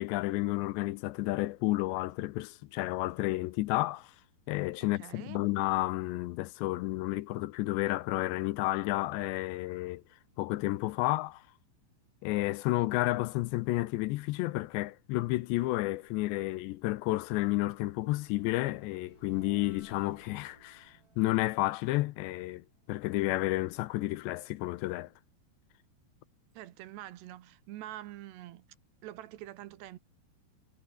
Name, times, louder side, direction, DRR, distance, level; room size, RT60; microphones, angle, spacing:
voice 1, 0.0-4.1 4.5-10.0 10.4-11.4 12.2-25.1, left 18 dB, 80° left, 2.9 m, -31 dB
voice 2, 5.0-5.4 26.5-28.7 29.0-30.0, right 14 dB, 75° right, 3.1 m, -45 dB
sound 1, 16.5-23.4, right 2 dB, 20° right, 6.8 m, -63 dB
omnidirectional pair, 5.2 m